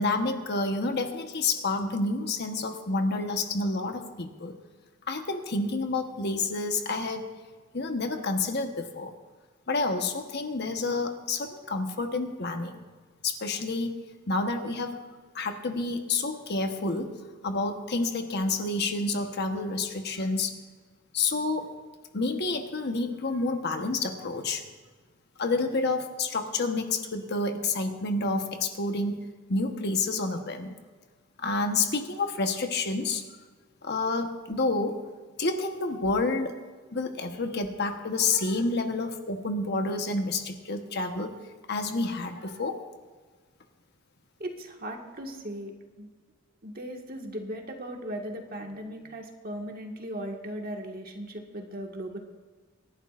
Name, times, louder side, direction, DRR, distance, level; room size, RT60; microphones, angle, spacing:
voice 1, 0.0-4.5 5.1-7.3 7.7-9.1 9.7-12.8 13.2-14.0 14.3-15.0 15.3-17.1 17.4-20.5 21.1-21.7 22.1-24.6 25.4-30.7 31.4-33.2 33.8-35.0 35.4-36.6 36.9-41.4 41.7-42.8, left 3 dB, 50° left, 5 dB, 1.2 m, -29 dB
voice 2, 44.4-46.1 46.6-52.2, right 1 dB, 45° right, 2 dB, 1.8 m, -38 dB
26.5 x 11.5 x 2.5 m, 1.4 s
head